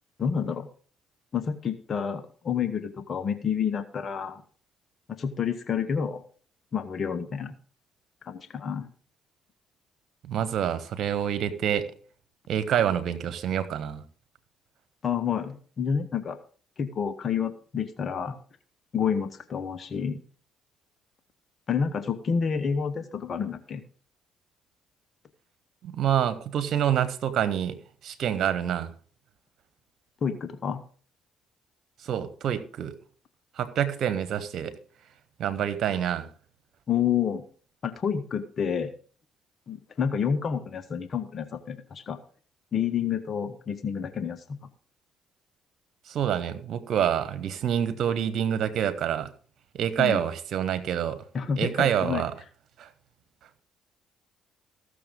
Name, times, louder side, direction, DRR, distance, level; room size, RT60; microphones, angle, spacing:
voice 1, 0.2-0.7 1.3-4.4 5.1-6.2 6.7-7.5 8.2-8.9 15.0-16.4 16.8-18.4 18.9-20.2 21.7-23.8 30.2-30.8 36.9-37.4 37.8-38.9 39.7-42.2 42.7-44.6 50.0-50.2 51.3-52.2, left 7 dB, 50° left, 1.1 m, -29 dB
voice 2, 10.2-11.9 12.5-14.0 25.8-27.8 28.0-28.9 32.0-32.9 33.6-34.7 35.4-36.3 46.1-49.3 49.7-51.2 51.6-52.3 52.8-52.9, right 9 dB, 65° right, 1.4 m, -27 dB
14.5 x 6.8 x 5.4 m
hypercardioid pair, 55°, 0 cm